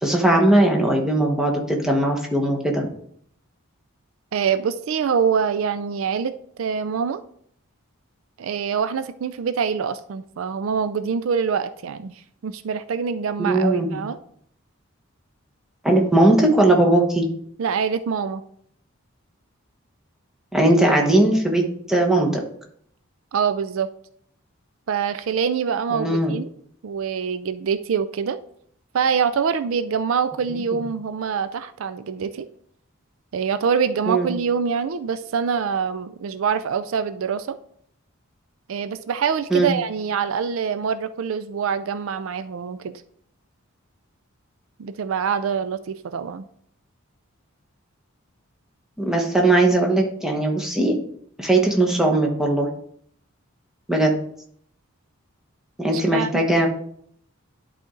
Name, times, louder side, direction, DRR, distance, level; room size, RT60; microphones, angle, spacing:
voice 1, 0.0-2.9 13.4-14.0 15.8-17.2 20.5-21.6 21.9-22.4 25.9-26.3 30.7-30.8 34.1-34.3 39.5-39.7 49.0-50.9 51.4-52.7 53.9-54.1 55.8-56.7, right 1 dB, ahead, 0 dB, 1.1 m, -19 dB
voice 2, 4.3-6.3 6.6-7.2 8.4-12.1 12.4-14.2 17.6-18.4 23.3-23.9 24.9-26.4 26.8-28.4 28.9-32.5 33.3-37.6 38.7-43.0 44.8-46.5 56.1-56.4, right 6 dB, 70° right, 12 dB, 0.4 m, -25 dB
11.0 x 4.2 x 3.8 m, 0.65 s
head